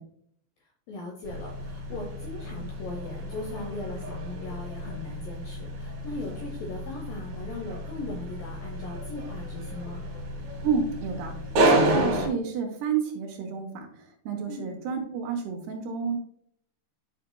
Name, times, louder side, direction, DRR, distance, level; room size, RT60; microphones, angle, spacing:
voice 1, 0.9-10.1 14.5-14.7, left 2 dB, 75° left, 1 dB, 2.1 m, -39 dB
sound 1, 1.2-12.3, right 1 dB, 55° right, 2.2 m, -30 dB
voice 2, 10.6-11.4 11.6-13.9 14.3-16.2, right 6 dB, 75° right, 2 dB, 2.8 m, -30 dB
11.0 x 5.7 x 2.2 m, 0.67 s
omnidirectional pair, 5.2 m